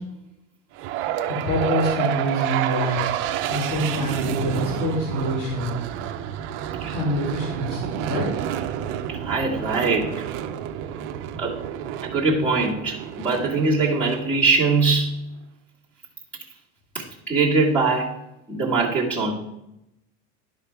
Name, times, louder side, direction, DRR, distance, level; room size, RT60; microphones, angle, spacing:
sound 1, 0.8-14.9, right 10 dB, 35° right, 0.5 m, -29 dB
voice 1, 1.3-3.0 3.5-5.7 6.9-8.4, equal, 70° left, -5 dB, 2.9 m, -26 dB
voice 2, 9.2-10.1 11.4-11.5 12.0-15.1 17.3-18.1 18.5-19.3, right 3 dB, 5° left, -5 dB, 1.7 m, -21 dB
11.5 x 5.1 x 3.4 m, 0.86 s
supercardioid pair, 150°, 37 cm